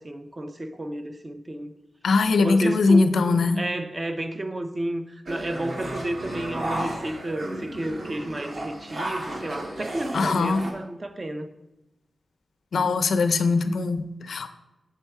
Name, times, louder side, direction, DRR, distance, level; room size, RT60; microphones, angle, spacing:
voice 1, 0.0-1.7 2.4-11.5, right 1 dB, 25° right, 0.4 m, -31 dB
voice 2, 2.0-3.6 10.1-10.6 12.7-14.5, left 4 dB, 80° left, 0.4 m, -21 dB
sound 1, 5.3-10.7, right 1 dB, 45° right, 0.9 m, -33 dB
6.8 x 4.5 x 4.5 m
wide cardioid pair, 175°, 0 cm